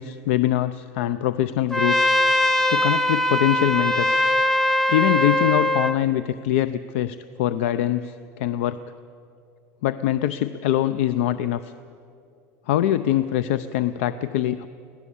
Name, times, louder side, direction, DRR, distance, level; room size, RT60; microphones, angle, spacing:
voice 1, 0.0-2.1 2.7-4.2 4.9-8.8 9.8-11.7 12.7-14.7, left 12 dB, 80° left, 13 dB, 0.6 m, -23 dB
Trumpet, 1.7-6.0, left 1 dB, 5° left, 0.7 m, -21 dB
24.0 x 17.5 x 8.5 m, 2.5 s
cardioid pair, 175°, 7 cm